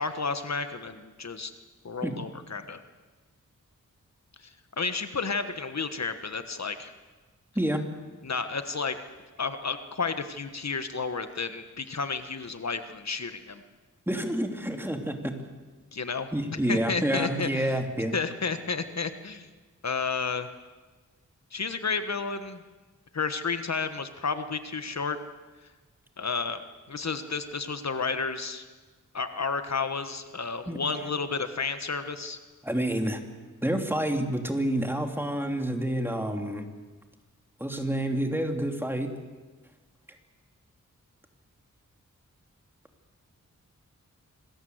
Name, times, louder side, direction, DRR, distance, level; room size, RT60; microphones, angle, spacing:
voice 1, 0.0-1.5 1.8-2.8 4.4-6.9 8.2-9.0 9.4-13.6 15.9-16.3 16.7-17.8 18.1-19.5 19.8-20.5 21.5-22.6 23.1-25.2 26.2-26.6 26.9-28.6 29.1-32.4, left 4 dB, 60° left, 9 dB, 1.4 m, -31 dB
voice 2, 14.1-15.4 16.3-18.2 30.7-30.8 32.6-33.2 33.6-36.7 37.6-39.1, right 1 dB, 5° right, 4 dB, 2.7 m, -28 dB
26.5 x 20.5 x 8.0 m, 1.3 s
wide cardioid pair, 90°, 31 cm